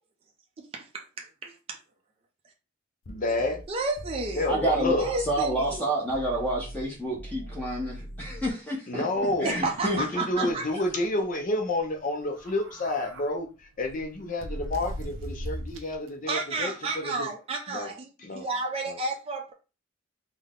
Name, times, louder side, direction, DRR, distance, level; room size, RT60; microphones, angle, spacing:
voice 1, 0.6-1.8 3.7-4.5 5.0-5.9 8.9-9.1 9.4-10.7 16.3-19.5, right 3 dB, 30° right, 0.5 m, -32 dB
sound 1, 3.0-5.8 6.1-8.5, equal, 85° left, 0.7 m, -41 dB
voice 2, 3.1-3.6 4.4-5.1 8.9-9.6 9.9-17.3 17.7-17.9 18.2-18.5 18.9-19.0, left 2 dB, 40° left, 0.5 m, -29 dB
voice 3, 4.5-9.0 9.4-10.0 10.4-10.5, right 1 dB, 10° left, 0.7 m, -29 dB
sound 2, 9.1-10.1 10.5-10.6 10.9-11.1 12.3-13.3 13.8-16.1, equal, 90° right, 0.7 m, -39 dB
3.8 x 2.1 x 3.5 m
head